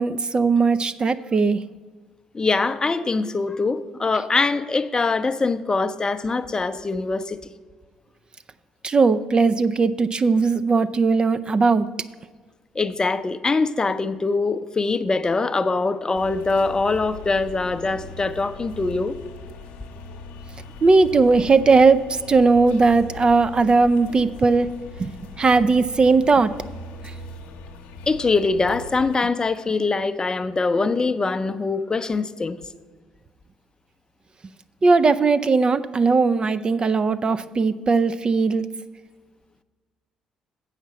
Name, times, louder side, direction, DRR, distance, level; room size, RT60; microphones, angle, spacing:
voice 1, 0.0-1.6 8.8-11.9 20.8-24.7 25.0-26.5 34.8-38.7, right 4 dB, 35° right, 0.4 m, -18 dB
voice 2, 2.3-7.4 12.7-19.2 28.1-32.6, left 3 dB, 25° left, 0.5 m, -23 dB
sound 1, 16.2-29.2, left 3 dB, 65° left, 0.8 m, -40 dB
8.1 x 5.8 x 7.4 m
figure-of-eight pair, 50°, 3 cm